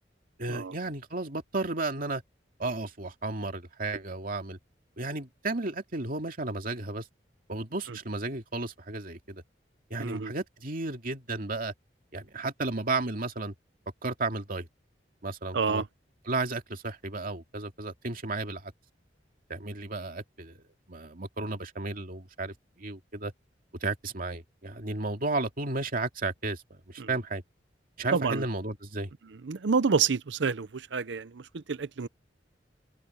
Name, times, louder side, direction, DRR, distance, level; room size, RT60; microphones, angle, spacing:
voice 1, 0.4-2.2 2.6-4.6 5.0-7.1 7.5-9.4 9.9-11.7 12.1-13.5 14.0-14.7 15.2-15.8 16.3-18.7 19.5-20.6 20.9-23.3 23.8-27.4 28.0-29.1, right 3 dB, 50° right, 2.3 m, -33 dB
voice 2, 10.0-10.3 15.5-15.9 27.0-27.1 28.1-28.4 29.4-32.1, right 5 dB, 75° right, 0.6 m, -28 dB
open air
head